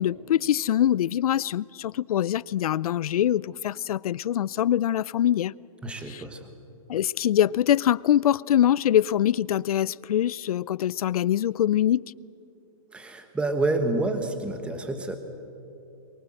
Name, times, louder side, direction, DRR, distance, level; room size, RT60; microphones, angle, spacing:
voice 1, 0.0-5.5 6.1-6.2 6.9-12.1, left 11 dB, 80° left, 0.5 m, -24 dB
voice 2, 5.8-6.5 12.9-15.2, right 2 dB, 5° right, 1.3 m, -28 dB
23.5 x 23.0 x 7.8 m
hypercardioid pair, 155°, 19 cm